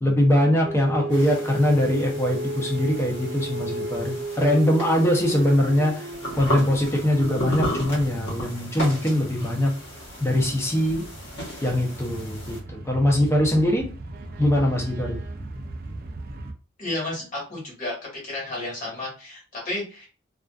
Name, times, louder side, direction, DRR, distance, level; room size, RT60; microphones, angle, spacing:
voice 1, 0.0-6.1 6.4-9.7 10.2-11.0 11.6-13.9 14.4-15.2, left 1 dB, 15° left, 0 dB, 0.6 m, -22 dB
sound 1, 0.6-8.4 9.6-16.5, right 2 dB, 45° right, 0.4 m, -36 dB
sound 2, 1.1-12.6, equal, 55° left, 1.1 m, -35 dB
voice 2, 16.8-18.0 18.2-20.1, left 2 dB, 40° left, -4 dB, 1.3 m, -32 dB
2.4 x 2.4 x 2.3 m, 0.35 s
head